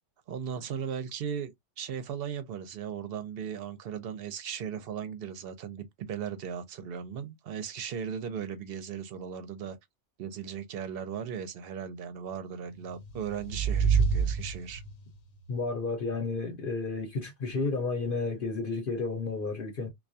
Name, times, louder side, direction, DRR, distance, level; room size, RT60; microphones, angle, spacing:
voice 1, 0.3-9.8 10.2-14.8, right 7 dB, 60° right, 0.7 m, -37 dB
sound 1, 12.8-15.2, right 5 dB, 90° left, 1.0 m, -28 dB
voice 2, 15.5-19.9, left 3 dB, 55° left, 0.9 m, -32 dB
2.3 x 2.2 x 2.5 m
omnidirectional pair, 1.2 m